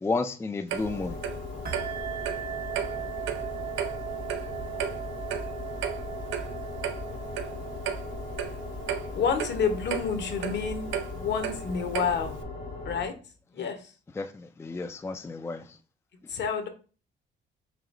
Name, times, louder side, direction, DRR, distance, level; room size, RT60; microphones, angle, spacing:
voice 1, 0.0-1.2 13.6-13.7 14.2-15.6, left 3 dB, 15° left, 0.3 m, -32 dB
Clock, 0.7-12.4, right 9 dB, 80° right, 0.5 m, -36 dB
sound 1, 0.8-13.1, left 3 dB, 85° left, 1.5 m, -38 dB
sound 2, 1.7-9.8, right 12 dB, 50° right, 0.8 m, -39 dB
voice 2, 9.1-12.3 12.8-13.1 13.5-13.9 16.3-16.7, left 6 dB, 60° left, 0.9 m, -29 dB
4.9 x 2.8 x 2.5 m
cardioid pair, 90°, 20 cm